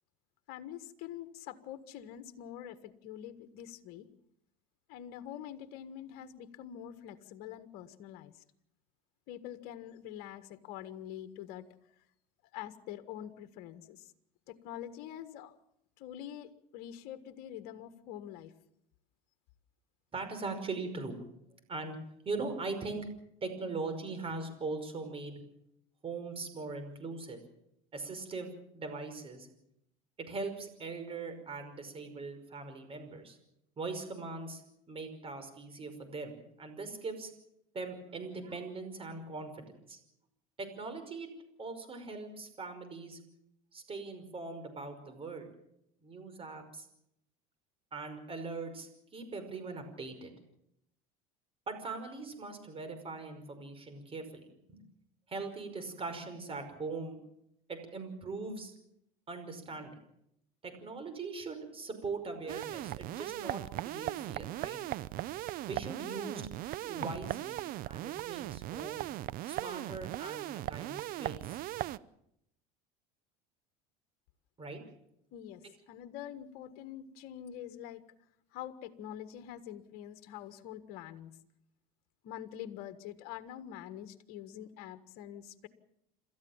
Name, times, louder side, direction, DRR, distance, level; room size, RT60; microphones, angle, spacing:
voice 1, 0.5-4.1 4.9-8.4 9.3-11.7 12.5-14.1 14.5-15.5 16.0-18.5 75.3-78.0 78.5-81.4 82.2-85.7, left 11 dB, 60° left, 10 dB, 1.6 m, -45 dB
voice 2, 20.1-21.2 21.7-22.0 22.2-23.1 23.4-25.4 26.0-27.4 27.9-29.5 30.2-33.4 33.8-34.6 34.9-37.3 37.7-40.0 40.6-41.3 41.6-43.2 43.7-45.5 46.0-46.9 47.9-50.3 51.7-54.8 55.3-57.2 57.7-58.7 59.3-59.9 60.6-64.8 65.7-66.5 66.8-69.0 69.4-71.6 74.6-74.8, right 3 dB, 30° right, 7 dB, 5.4 m, -41 dB
sound 1, 62.5-72.0, right 15 dB, 50° right, 0.7 m, -38 dB
27.5 x 13.5 x 7.3 m, 0.77 s
hypercardioid pair, 90°, 18 cm